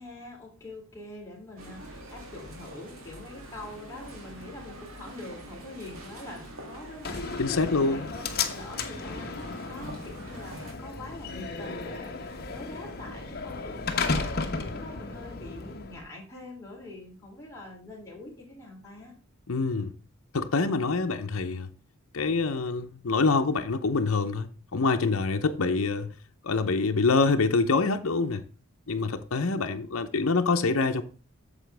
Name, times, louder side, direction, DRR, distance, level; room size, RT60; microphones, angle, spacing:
voice 1, 0.0-14.3 14.6-19.1, left 2 dB, 15° left, 3.1 m, -44 dB
sound 1, 1.6-10.7, right 1 dB, 85° right, 2.4 m, -45 dB
Slam, 7.0-16.0, left 4 dB, 45° left, 1.1 m, -34 dB
voice 2, 7.4-8.1 19.5-19.9 20.3-21.7 22.1-26.1 26.4-28.4 28.9-31.0, left 3 dB, 80° left, 0.8 m, -25 dB
9.0 x 6.9 x 3.4 m
head